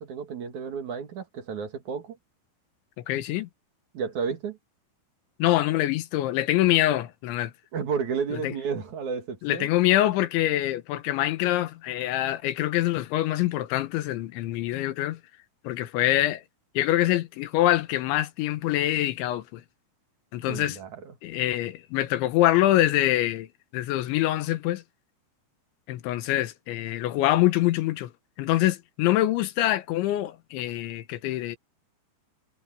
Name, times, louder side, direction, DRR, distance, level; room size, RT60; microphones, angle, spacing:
voice 1, 0.0-2.2 3.9-4.6 7.7-9.7 20.5-21.1, right 6 dB, 50° right, 3.1 m, -32 dB
voice 2, 3.1-3.5 5.4-7.5 8.4-8.5 9.4-15.2 15.7-16.4 16.8-19.6 20.3-20.8 21.2-23.5 23.7-24.8 25.9-28.1 28.4-31.6, left 14 dB, 80° left, 3.6 m, -25 dB
omnidirectional pair, 5.3 m